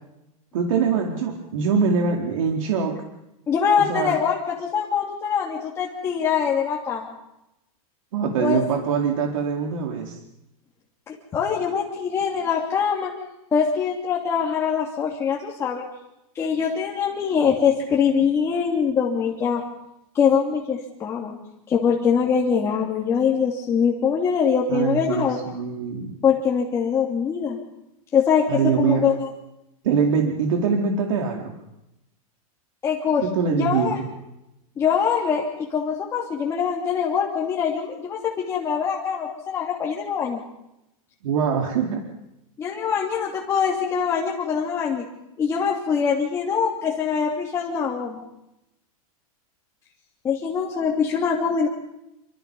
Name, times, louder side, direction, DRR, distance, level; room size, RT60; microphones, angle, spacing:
voice 1, 0.5-3.0 3.9-4.2 8.1-10.2 24.7-26.2 28.5-29.0 29.8-31.6 33.2-34.0 41.2-42.0, right 6 dB, 60° right, 1 dB, 4.3 m, -23 dB
voice 2, 3.5-7.1 8.4-8.6 11.1-13.1 13.5-15.8 16.3-19.6 20.1-21.4 21.7-25.4 26.2-27.6 28.1-29.3 32.8-33.2 33.5-34.0 34.8-40.4 42.6-45.0 45.4-48.2 50.2-51.7, left 6 dB, 15° left, -3 dB, 2.9 m, -23 dB
28.5 x 26.5 x 5.6 m, 0.89 s
supercardioid pair, 170°, 19 cm